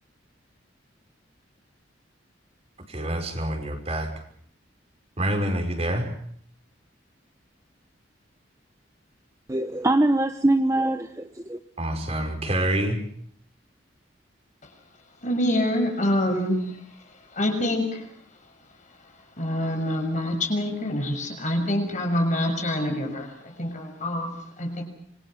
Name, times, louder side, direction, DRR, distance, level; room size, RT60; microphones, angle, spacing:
voice 1, 2.9-4.1 5.2-6.1 11.8-13.0, right 1 dB, 35° right, 4 dB, 5.5 m, -26 dB
voice 2, 9.5-11.6, right 1 dB, 15° right, 8 dB, 0.9 m, -23 dB
voice 3, 15.2-16.8 17.3-18.1 19.4-24.8, left 1 dB, 40° left, 5 dB, 6.4 m, -26 dB
27.0 x 24.5 x 6.5 m, 0.64 s
head